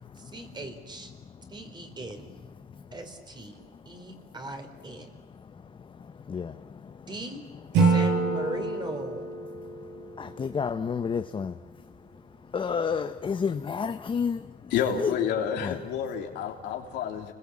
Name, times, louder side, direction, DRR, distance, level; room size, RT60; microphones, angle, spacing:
voice 1, 0.3-1.1 1.5-2.3 2.9-3.6 3.9-5.1 7.1-7.4 7.8-9.3, right 2 dB, 25° right, 6 dB, 4.1 m, -39 dB
Acoustic guitar / Strum, 7.7-10.9, right 4 dB, 90° right, 6.4 m, -27 dB
voice 2, 10.2-11.5 12.5-14.4 15.0-15.2 15.6-15.8, left 6 dB, 30° left, 9 dB, 0.9 m, -29 dB
voice 3, 14.7-17.3, left 8 dB, 85° left, 2 dB, 3.4 m, -29 dB
30.0 x 21.0 x 8.7 m, 1.2 s
cardioid pair, 110°, 17 cm